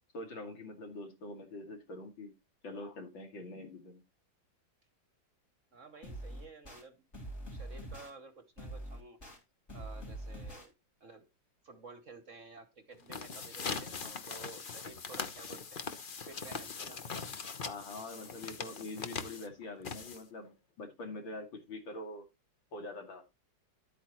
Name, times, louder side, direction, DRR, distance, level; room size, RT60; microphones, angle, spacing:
voice 1, 0.1-2.3 2.6-4.0 17.6-22.3 22.7-23.2, left 2 dB, 70° left, 3.0 m, -44 dB
voice 2, 5.7-7.0 7.5-9.2 9.7-10.7 11.0-11.3 11.6-15.9 16.2-17.0, right 4 dB, 50° right, 1.1 m, -52 dB
sound 1, 6.0-6.8 7.1-8.1 8.6-9.4 9.7-10.7, right 1 dB, 35° left, 3.5 m, -44 dB
sound 2, 12.9-20.5, left 5 dB, 50° left, 0.6 m, -41 dB
11.0 x 8.6 x 3.0 m
omnidirectional pair, 2.1 m